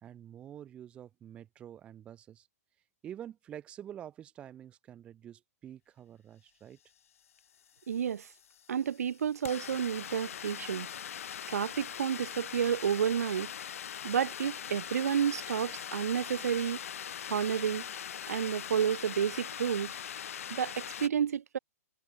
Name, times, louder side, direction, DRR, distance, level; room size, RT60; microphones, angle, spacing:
voice 1, 0.0-2.5 3.0-6.8, right 10 dB, 15° right, 2.1 m, -47 dB
sound 1, 7.4-7.5 7.7-21.1, left 9 dB, 60° left, 2.3 m, -42 dB
voice 2, 7.9-8.3 8.7-10.9 11.5-13.5 14.0-16.8 17.2-17.8 18.3-20.0 20.5-21.6, right 8 dB, 65° right, 1.8 m, -31 dB
hypercardioid pair, 170°, 9 cm